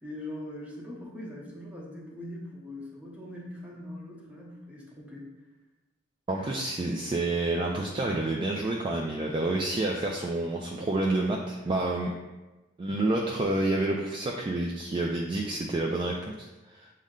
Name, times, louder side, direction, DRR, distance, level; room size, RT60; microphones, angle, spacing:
voice 1, 0.0-5.2, left 1 dB, 5° right, -5 dB, 0.9 m, -41 dB
voice 2, 6.3-12.1 12.8-16.9, right 2 dB, 25° right, -1 dB, 0.3 m, -29 dB
6.2 x 2.2 x 3.6 m, 1.1 s
head